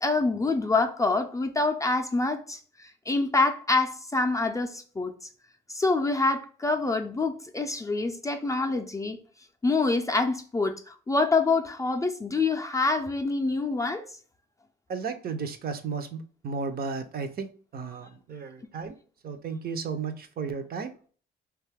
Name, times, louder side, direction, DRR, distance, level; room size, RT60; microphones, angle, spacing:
voice 1, 0.0-5.1 5.7-9.2 9.6-14.0, left 3 dB, 15° left, 0.4 m, -26 dB
voice 2, 14.9-18.9 19.2-20.9, right 5 dB, 50° right, 0.5 m, -34 dB
2.6 x 2.3 x 3.3 m
cardioid pair, 90°, 20 cm